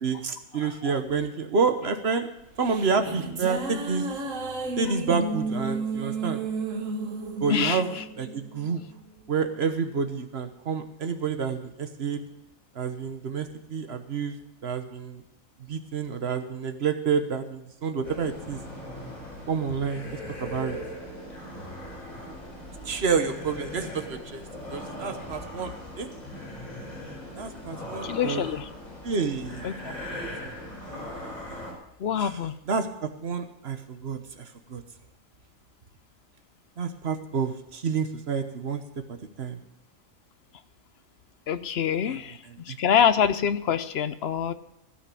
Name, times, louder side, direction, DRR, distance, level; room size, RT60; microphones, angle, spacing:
voice 1, 0.0-2.3 2.6-4.0 4.8-6.4 7.4-8.8 9.3-12.2 12.7-14.4 14.6-15.2 15.7-18.6 19.5-20.1 20.4-20.8 22.2-22.3 22.9-24.4 24.7-25.7 26.0-26.1 27.3-28.5 29.0-29.9 30.2-30.5 32.2-32.3 32.7-34.8 36.8-38.8 39.4-39.6 42.0-42.2 42.7-42.8, right 5 dB, 50° right, 7 dB, 1.3 m, -29 dB
voice 2, 0.6-1.0 7.5-8.0 28.0-28.7 29.6-29.9 32.0-32.5 41.5-42.4 42.6-44.5, left 8 dB, 60° left, 13 dB, 0.8 m, -26 dB
sound 1, 2.4-9.0, right 3 dB, 70° right, 1.7 m, -32 dB
sound 2, 18.0-31.7, left 1 dB, 85° left, 4.9 m, -39 dB
16.0 x 5.8 x 8.3 m, 0.83 s
omnidirectional pair, 1.4 m